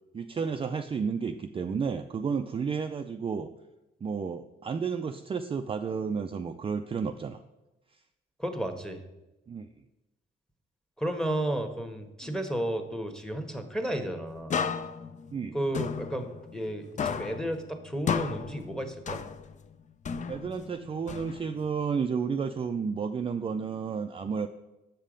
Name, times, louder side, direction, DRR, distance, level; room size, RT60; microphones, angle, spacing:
voice 1, 0.1-3.5 4.0-7.4 9.5-9.7 12.2-12.3 15.3-15.6 20.3-24.5, right 6 dB, 30° right, 6 dB, 0.4 m, -32 dB
voice 2, 8.4-9.0 11.0-14.6 15.5-19.2, right 1 dB, 5° left, 6 dB, 1.2 m, -33 dB
sound 1, 14.5-16.7 17.0-19.7 20.0-21.7, left 6 dB, 40° left, 0.5 m, -34 dB
7.3 x 5.5 x 5.0 m, 0.97 s
cardioid pair, 90°, 20 cm